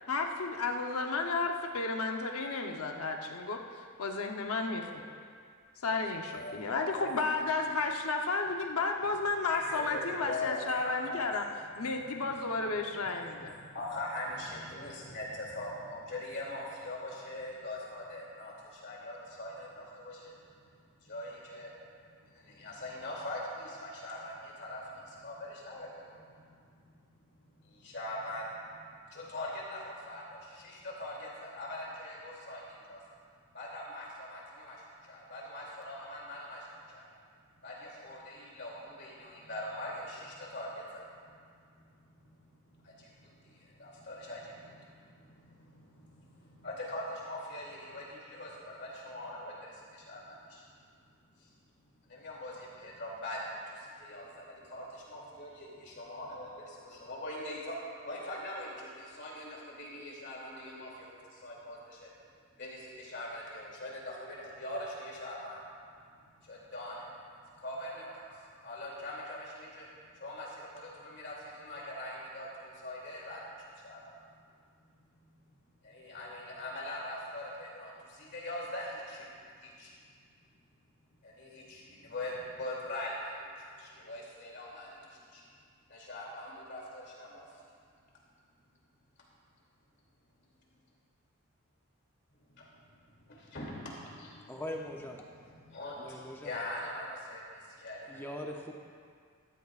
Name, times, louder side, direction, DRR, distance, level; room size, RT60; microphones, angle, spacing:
voice 1, 0.1-3.6 4.0-4.9 5.8-11.5 11.8-13.6, left 3 dB, 90° left, 3 dB, 0.9 m, -32 dB
voice 2, 6.3-7.2 9.5-20.7 21.0-26.8 27.2-27.4 27.6-33.0 33.5-37.1 37.6-41.5 41.7-50.8 51.4-57.8 58.0-62.1 62.6-65.6 66.2-67.1 67.6-69.9 70.1-74.2 75.2-75.4 75.8-80.0 81.2-85.4 85.9-87.6 92.3-94.6 95.2-98.2, left 1 dB, 55° left, -4 dB, 2.8 m, -43 dB
voice 3, 94.5-95.3 96.0-96.6 98.1-98.7, left 1 dB, 10° left, 0 dB, 0.6 m, -41 dB
14.0 x 13.5 x 2.5 m, 2.1 s
head